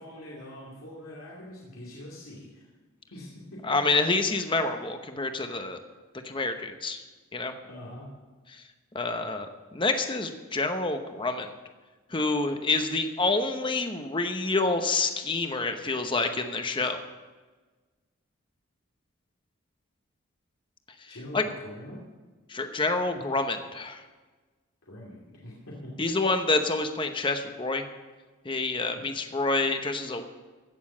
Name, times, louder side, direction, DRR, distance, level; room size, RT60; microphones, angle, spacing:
voice 1, 0.0-2.7 3.1-3.7 7.6-8.1 21.1-22.0 24.9-25.9 29.0-29.1, left 1 dB, 85° left, -5 dB, 2.6 m, -43 dB
voice 2, 3.6-5.8 6.2-7.0 7.3-7.5 8.5-8.6 8.9-11.5 12.1-17.0 21.3-21.4 22.5-24.0 26.0-27.8 28.4-30.2, left 3 dB, 25° left, 7 dB, 0.9 m, -27 dB
16.0 x 7.0 x 7.3 m, 1.3 s
head